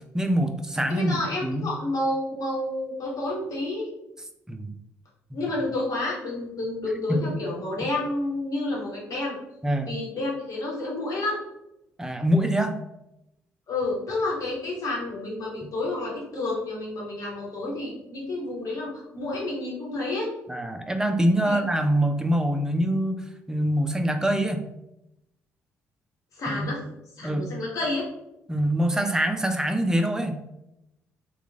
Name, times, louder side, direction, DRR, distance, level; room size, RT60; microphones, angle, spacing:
voice 1, 0.0-1.7 4.5-4.7 5.3-5.4 7.1-7.4 9.6-9.9 12.0-12.8 20.5-24.7 26.5-26.7 27.2-27.5 28.5-30.4, equal, 10° right, 6 dB, 0.5 m, -25 dB
voice 2, 0.9-3.9 5.3-9.4 9.8-11.4 13.7-20.3 21.4-21.6 26.3-26.8 27.2-28.0, left 2 dB, 50° left, -3 dB, 1.2 m, -30 dB
3.0 x 2.4 x 3.5 m, 0.88 s
figure-of-eight pair, 45°, 7 cm